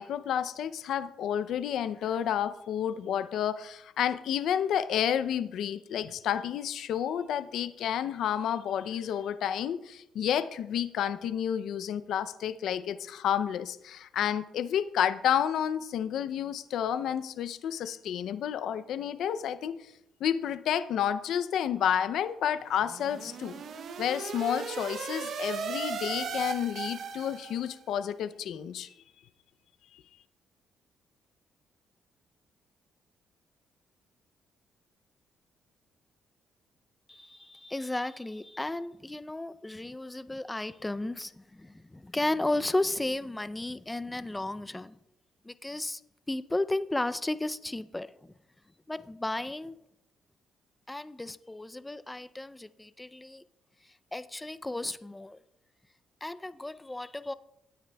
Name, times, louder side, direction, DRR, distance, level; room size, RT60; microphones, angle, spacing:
voice 1, 0.0-19.9 20.2-23.6 24.0-28.9 29.9-30.0, left 9 dB, 75° left, 0.5 m, -30 dB
sound 1, 22.7-27.7, right 6 dB, 65° right, 0.8 m, -37 dB
voice 2, 37.1-45.0 45.4-46.0 46.3-48.3 48.9-49.8 50.9-53.4 53.8-55.4 56.2-57.3, left 2 dB, 15° left, 0.4 m, -34 dB
17.5 x 9.3 x 2.3 m
cardioid pair, 90°, 0 cm